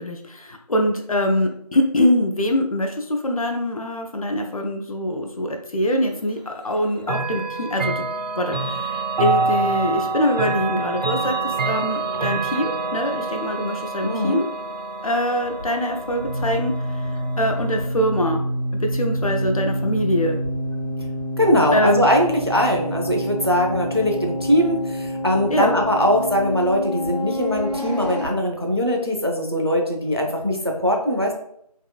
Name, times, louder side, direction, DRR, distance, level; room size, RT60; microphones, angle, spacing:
voice 1, 0.0-8.1 8.4-14.5 15.0-17.1 17.4-18.4 18.7-20.4 21.7-22.1 25.5-25.8, left 1 dB, 60° left, 4 dB, 0.5 m, -24 dB
Chime / Clock, 7.0-17.9, right 3 dB, 90° right, 0.7 m, -27 dB
voice 2, 14.0-14.4 21.4-31.3, equal, 40° right, 1 dB, 0.4 m, -21 dB
sound 1, 15.4-28.3, equal, 90° left, 0.9 m, -28 dB
3.6 x 2.3 x 2.3 m, 0.69 s
figure-of-eight pair, 175°, 21 cm